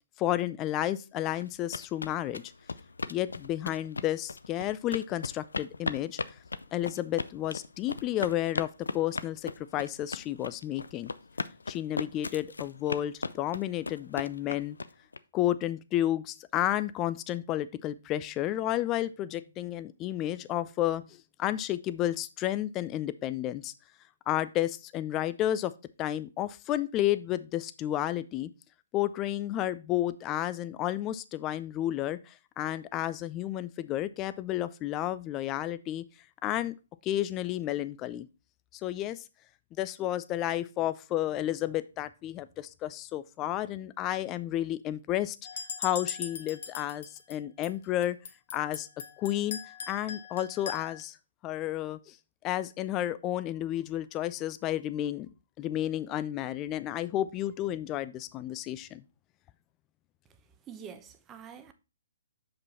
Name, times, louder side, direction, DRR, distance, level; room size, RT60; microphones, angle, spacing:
voice 1, 0.2-2.4 3.1-6.2 6.7-8.7 8.9-11.1 11.7-14.8 15.3-23.7 24.3-25.7 26.0-28.5 28.9-36.0 36.4-36.7 37.0-38.3 38.8-39.2 39.8-45.4 45.8-48.2 48.5-48.9 49.2-49.6 49.9-51.2 51.4-52.1 52.4-55.3 55.6-59.0, left 13 dB, 25° left, 0.4 m, -31 dB
sound 1, 1.4-15.2, left 4 dB, 85° left, 0.5 m, -37 dB
sound 2, 45.4-47.4 47.6-51.0, left 6 dB, 60° left, 1.4 m, -40 dB
voice 2, 60.7-61.7, right 7 dB, 20° right, 0.8 m, -46 dB
6.2 x 5.2 x 4.2 m
hypercardioid pair, 140°, 0 cm